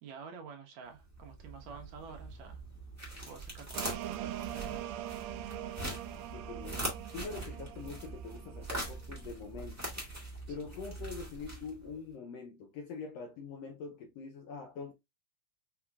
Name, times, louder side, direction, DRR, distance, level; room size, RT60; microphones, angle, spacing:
voice 1, 0.0-2.6 3.2-5.0 10.6-10.7, right 5 dB, 70° right, 2.1 m, -49 dB
sound 1, 1.0-12.0, right 1 dB, 10° right, 0.9 m, -43 dB
sound 2, 3.7-9.2, right 12 dB, 90° right, 1.5 m, -42 dB
voice 2, 6.1-6.8 7.1-9.8 10.5-14.9, left 5 dB, 80° left, 1.5 m, -44 dB
5.9 x 2.8 x 2.3 m
omnidirectional pair, 3.5 m